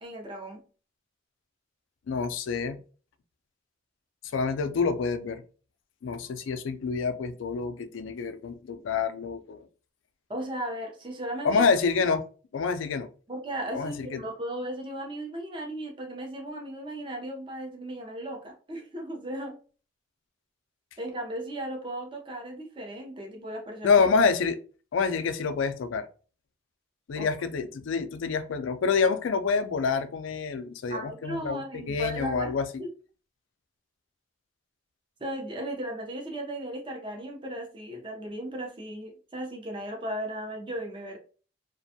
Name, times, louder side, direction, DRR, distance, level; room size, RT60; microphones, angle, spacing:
voice 1, 0.0-0.6 10.3-11.6 13.3-19.6 21.0-24.0 27.2-27.3 30.9-32.5 32.8-32.9 35.2-41.2, right 1 dB, 25° right, 2 dB, 0.5 m, -36 dB
voice 2, 2.1-2.8 4.3-5.4 6.0-9.7 11.4-12.2 12.5-13.1 13.7-14.2 23.8-24.6 24.9-26.1 27.1-32.7, left 5 dB, 90° left, 10 dB, 0.4 m, -27 dB
2.5 x 2.2 x 2.6 m, 0.38 s
head